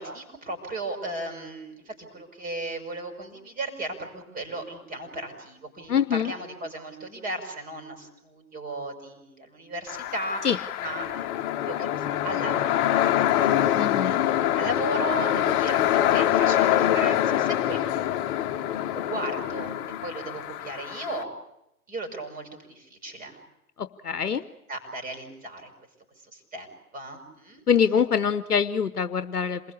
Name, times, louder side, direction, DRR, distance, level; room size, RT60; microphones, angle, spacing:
voice 1, 0.0-11.9 12.2-18.4 18.9-19.7 20.0-21.3 21.9-23.4 24.3-24.4 24.7-25.7 26.3-26.7 26.9-27.6, right 2 dB, 20° right, 5 dB, 5.7 m, -36 dB
voice 2, 5.9-6.3 10.4-10.6 13.7-14.2 23.8-24.4 27.7-29.6, left 7 dB, 80° left, 13 dB, 1.0 m, -24 dB
sound 1, 9.9-21.2, left 12 dB, 30° left, 1.5 m, -25 dB
28.0 x 20.5 x 8.5 m, 0.86 s
figure-of-eight pair, 115°, 45 cm